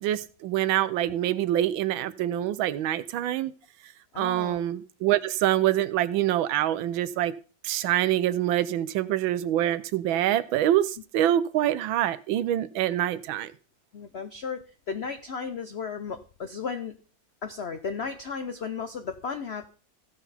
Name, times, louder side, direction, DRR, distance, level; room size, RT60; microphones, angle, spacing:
voice 1, 0.0-3.5 4.2-7.4 7.6-13.5, right 12 dB, 90° right, 1.4 m, -25 dB
voice 2, 4.1-4.6 13.9-17.0 17.4-19.7, left 5 dB, 80° left, 0.5 m, -34 dB
15.5 x 5.9 x 4.1 m
omnidirectional pair, 2.1 m